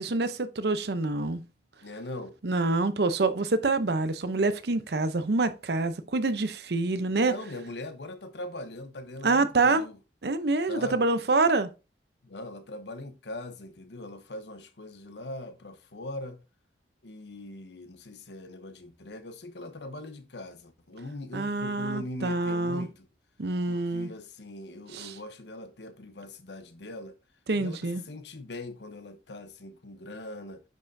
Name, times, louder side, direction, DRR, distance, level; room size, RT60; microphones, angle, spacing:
voice 1, 0.0-1.4 2.4-7.3 9.2-9.8 10.2-11.7 21.3-22.9 23.4-24.1 24.9-25.1 27.5-28.0, right 3 dB, 65° right, 0.7 m, -26 dB
voice 2, 1.8-2.4 7.2-10.0 10.7-11.0 12.2-16.4 17.0-23.1 23.7-27.1 27.5-30.6, left 1 dB, 80° left, 0.9 m, -41 dB
9.2 x 5.4 x 2.7 m
head